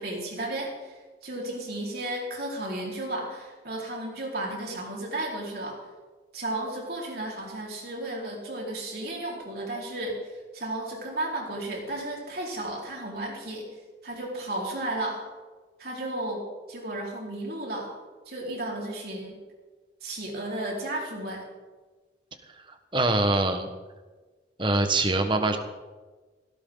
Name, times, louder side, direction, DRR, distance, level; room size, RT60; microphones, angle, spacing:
voice 1, 0.0-5.8 6.3-13.7 14.0-15.2 15.8-16.4 16.7-17.9 18.3-19.4 20.0-21.4, right 1 dB, 55° right, -3 dB, 4.7 m, -33 dB
voice 2, 22.9-23.7 24.6-25.6, right 2 dB, 25° right, 6 dB, 1.4 m, -23 dB
17.5 x 17.0 x 4.0 m, 1.3 s
head